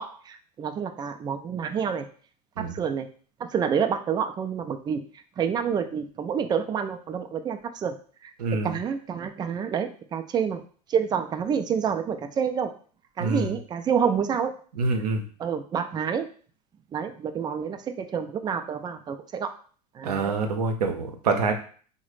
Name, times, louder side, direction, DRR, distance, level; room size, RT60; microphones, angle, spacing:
voice 1, 0.0-2.1 2.6-3.1 3.4-5.0 5.4-8.0 8.2-8.3 8.6-10.6 10.9-12.7 13.2-14.5 15.4-16.3 16.9-19.5 19.9-20.3, right 7 dB, 20° right, 7 dB, 0.4 m, -28 dB
voice 2, 8.4-8.7 13.2-13.5 14.7-15.2 20.0-21.5, right 4 dB, 70° right, 5 dB, 0.6 m, -26 dB
3.8 x 2.1 x 3.1 m, 0.43 s
figure-of-eight pair, 80°, 21 cm